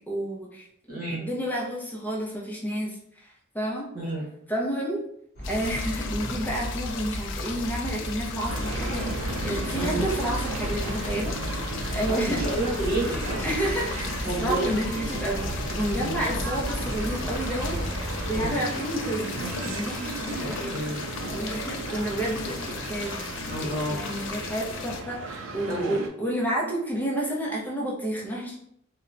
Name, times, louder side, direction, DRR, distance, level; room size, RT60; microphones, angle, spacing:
voice 1, 0.1-0.7 1.1-3.3 3.5-3.9 4.5-5.0 5.5-9.2 9.4-12.4 13.4-17.8 18.3-19.4 19.7-20.7 21.3-23.1 23.9-28.5, right 1 dB, 10° left, -4 dB, 0.6 m, -30 dB
voice 2, 0.9-1.2 3.9-4.3 9.7-10.0 11.1-11.3 12.1-13.4 14.2-14.8 16.0-16.3 18.3-18.6 20.4-21.0 23.5-24.0 25.7-26.0, right 1 dB, 45° right, -5 dB, 1.1 m, -30 dB
sound 1, 5.4-25.0, left 5 dB, 65° left, 0.3 m, -37 dB
sound 2, 5.4-18.5, equal, 45° left, 0.8 m, -34 dB
sound 3, 8.5-26.1, right 2 dB, 70° right, 0.4 m, -35 dB
2.7 x 2.1 x 2.5 m, 0.69 s
head